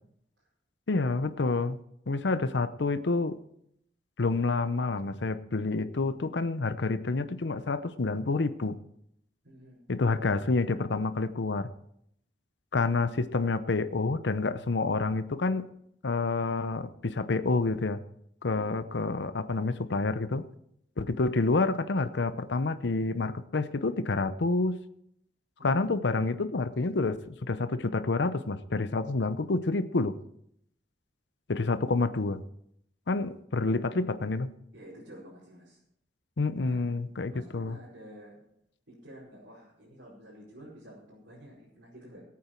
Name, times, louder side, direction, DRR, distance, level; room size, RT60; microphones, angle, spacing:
voice 1, 0.9-1.8 2.1-3.4 4.2-8.8 9.9-11.7 12.7-15.7 16.0-18.0 18.4-20.4 21.0-24.8 25.6-30.2 31.5-32.4 33.1-34.5 36.4-37.8, left 3 dB, 75° left, 11 dB, 0.7 m, -28 dB
voice 2, 9.4-9.8 18.5-18.7 25.6-25.9 34.7-35.8 36.6-38.4 38.9-42.2, equal, 90° right, -9 dB, 5.0 m, -50 dB
18.5 x 8.6 x 4.5 m, 0.73 s
head